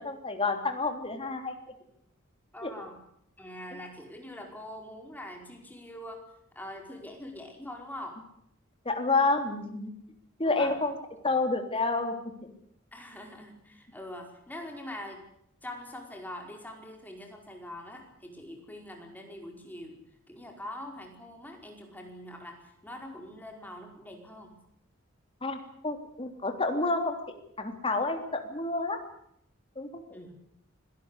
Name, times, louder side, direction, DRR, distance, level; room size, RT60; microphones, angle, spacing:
voice 1, 0.0-1.5 2.6-2.7 8.8-9.9 10.4-10.9 11.2-12.1 12.4-12.5 25.4-27.2 27.6-29.0 29.7-30.3, left 3 dB, 25° left, 5 dB, 3.3 m, -29 dB
voice 2, 2.5-3.0 3.4-6.2 6.5-8.2 10.4-10.7 12.9-15.2 15.6-20.0 20.3-24.5 30.1-30.3, left 1 dB, 10° left, 2 dB, 4.9 m, -43 dB
25.5 x 18.0 x 8.3 m, 0.73 s
head